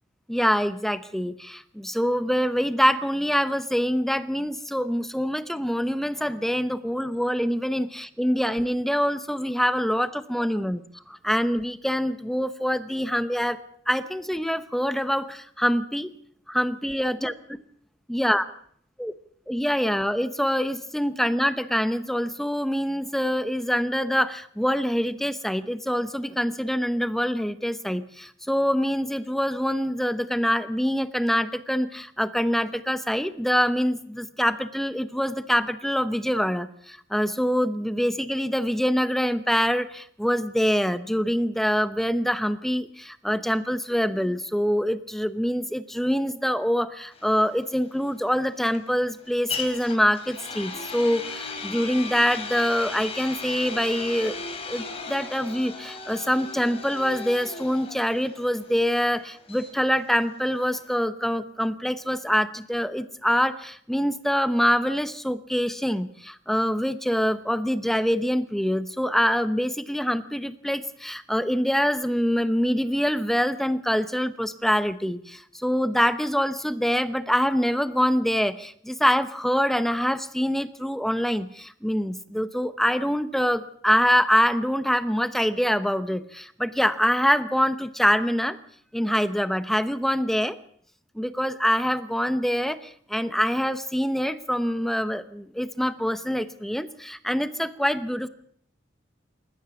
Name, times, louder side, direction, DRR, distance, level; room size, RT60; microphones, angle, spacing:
voice 1, 0.3-10.8 11.1-13.6 13.9-16.1 16.5-17.3 18.1-18.4 19.0-19.1 19.5-54.3 54.7-88.6 88.9-90.6 91.2-98.3, equal, ahead, 12 dB, 0.8 m, -25 dB
sound 1, 47.1-60.9, left 4 dB, 30° left, 4.2 m, -37 dB
27.5 x 15.0 x 7.1 m, 0.62 s
head